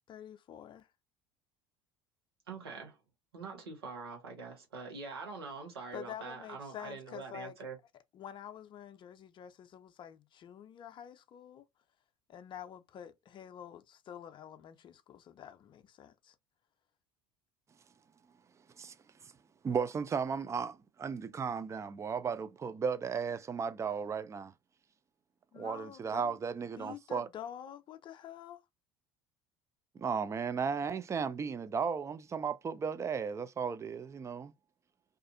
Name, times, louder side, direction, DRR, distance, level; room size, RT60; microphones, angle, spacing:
voice 1, 0.1-0.9 5.9-7.6 8.1-11.7 12.3-16.4 25.5-26.4 26.8-28.6, left 9 dB, 40° left, 0.5 m, -48 dB
voice 2, 2.5-3.0 3.3-7.8, right 4 dB, 90° right, 1.0 m, -44 dB
voice 3, 19.6-24.5 25.6-27.3 30.0-34.5, right 6 dB, 25° right, 0.4 m, -35 dB
2.5 x 2.4 x 2.6 m
hypercardioid pair, 70°, 12 cm